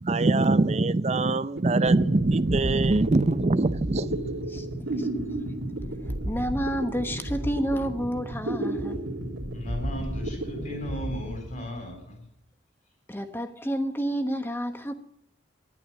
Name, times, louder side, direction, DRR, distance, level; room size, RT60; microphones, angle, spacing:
voice 1, 0.0-4.3, right 2 dB, 35° right, 0.5 m, -23 dB
sound 1, 1.3-1.4 1.6-12.0, right 1 dB, 75° right, 2.4 m, -33 dB
voice 2, 4.5-5.1 6.2-9.0 13.1-14.9, equal, 10° left, 1.1 m, -30 dB
voice 3, 9.5-12.3, equal, 40° left, 3.9 m, -36 dB
12.0 x 11.0 x 7.3 m
head